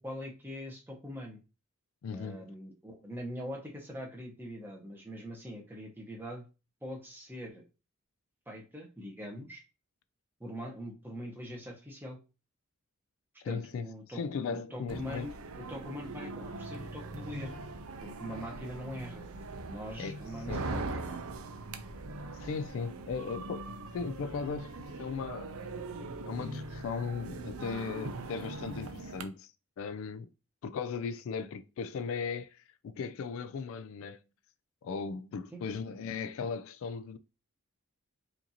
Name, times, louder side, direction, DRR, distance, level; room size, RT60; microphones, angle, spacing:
voice 1, 0.0-1.4 2.1-6.4 6.8-7.6 8.5-9.6 10.4-12.2 13.4-14.2 14.5-17.5 18.0-19.3 19.6-20.9 35.5-35.6, equal, 10° right, 0.9 m, -42 dB
voice 2, 2.0-2.4 13.4-15.3 20.0-20.2 20.5-20.6 22.3-25.5 26.2-29.5 29.8-30.3 30.6-34.2 34.8-37.2, left 5 dB, 65° left, 0.3 m, -37 dB
sound 1, 14.9-29.2, right 2 dB, 75° right, 0.5 m, -41 dB
5.0 x 2.6 x 2.8 m
head